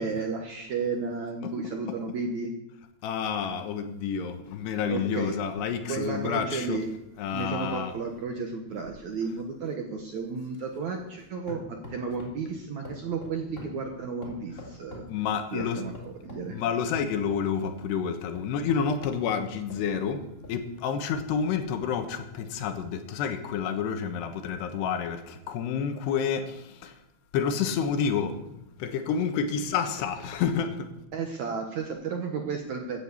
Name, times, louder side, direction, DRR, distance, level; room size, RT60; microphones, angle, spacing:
voice 1, 0.0-2.5 4.9-5.3 5.9-6.9 7.3-15.1 15.5-16.6 31.1-33.0, right 4 dB, 65° right, 2 dB, 1.9 m, -33 dB
voice 2, 3.0-6.8 7.2-7.9 15.1-15.9 16.5-20.2 20.5-26.9 27.3-30.9, left 7 dB, 80° left, 7 dB, 3.3 m, -29 dB
sound 1, 7.9-11.2 11.5-12.5 12.8-15.2 15.6-16.5 16.9-17.8 18.3-20.6 21.1-22.0 22.6-22.7, left 2 dB, 20° left, 2.8 m, -46 dB
16.0 x 9.3 x 7.1 m, 0.89 s
omnidirectional pair, 4.8 m